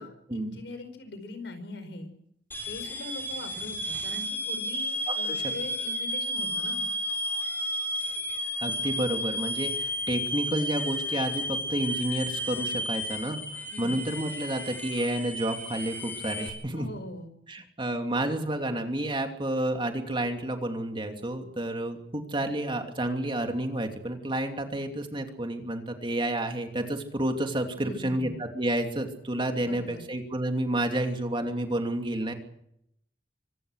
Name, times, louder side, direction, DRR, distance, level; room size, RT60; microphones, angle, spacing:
voice 1, 0.0-2.1 2.7-6.8 13.7-14.0 16.7-17.3 27.8-28.4 29.6-30.1, left 2 dB, 85° left, 9 dB, 5.1 m, -41 dB
sound 1, 2.5-16.5, equal, 10° left, 4.2 m, -32 dB
voice 2, 8.6-16.9 17.5-32.3, right 1 dB, 30° right, 4 dB, 2.8 m, -30 dB
25.0 x 18.5 x 6.6 m, 0.75 s
head